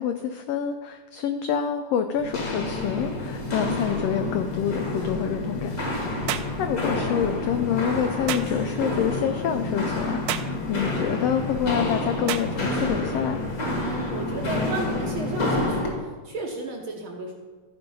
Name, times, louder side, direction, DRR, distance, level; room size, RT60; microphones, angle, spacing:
voice 1, 0.0-5.8 6.1-6.2 6.6-10.3 10.7-13.4, left 8 dB, 90° left, 7 dB, 1.4 m, -27 dB
Walk footsteps, 2.2-16.0, left 2 dB, 40° left, 1.5 m, -29 dB
sound 1, 6.3-6.6 8.3-8.5 10.3-10.6 12.3-12.5, right 11 dB, 80° right, 1.7 m, -29 dB
voice 2, 13.7-17.3, right 3 dB, 65° right, 1 dB, 1.3 m, -34 dB
13.5 x 5.2 x 5.4 m, 1.4 s
omnidirectional pair, 3.4 m